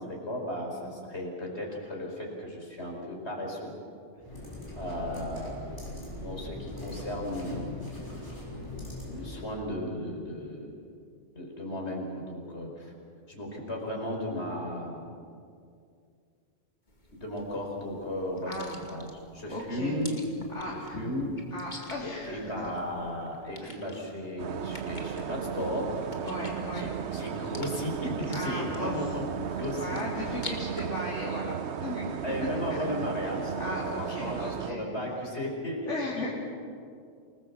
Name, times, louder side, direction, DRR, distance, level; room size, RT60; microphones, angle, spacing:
voice 1, 0.0-3.7 4.8-7.7 9.1-10.7 11.3-12.9 13.3-15.1 17.1-20.2 20.6-21.3 21.8-26.1 26.7-30.0 32.2-36.3, left 1 dB, 65° left, 0 dB, 5.3 m, -35 dB
sound 1, 4.2-9.6, left 2 dB, 15° left, 6.1 m, -40 dB
sound 2, 16.9-30.8, left 2 dB, 40° left, 2.6 m, -48 dB
voice 2, 18.5-18.8 19.5-20.0 20.5-21.0 21.5-22.7 23.6-23.7 26.2-26.9 28.3-29.1 29.7-31.6 31.8-32.8 33.6-34.8 35.9-36.3, left 1 dB, 85° left, -5 dB, 4.0 m, -36 dB
sound 3, 24.4-34.7, right 8 dB, 70° right, 1.1 m, -35 dB
28.0 x 19.5 x 7.4 m, 2.3 s
omnidirectional pair, 1.2 m